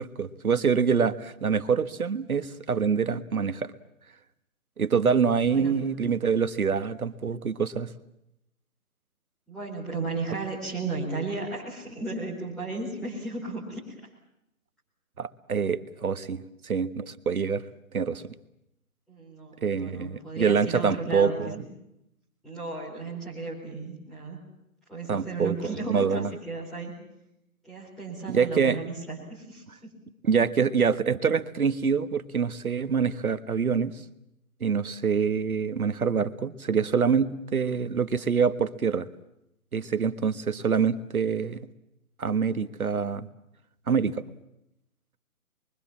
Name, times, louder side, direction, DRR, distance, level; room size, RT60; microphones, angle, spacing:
voice 1, 0.0-3.7 4.8-7.9 15.2-17.6 17.9-18.2 19.6-21.5 25.1-25.5 25.9-26.3 28.3-28.8 30.2-33.9 34.6-39.1 39.7-41.6 42.2-43.3 43.9-44.2, right 6 dB, 75° right, 12 dB, 1.7 m, -25 dB
voice 2, 5.5-5.9 9.5-14.0 19.1-21.6 22.4-24.4 24.9-27.0 27.6-29.9, right 3 dB, ahead, -10 dB, 4.5 m, -35 dB
26.0 x 23.5 x 7.4 m, 0.83 s
hypercardioid pair, 170°, 43 cm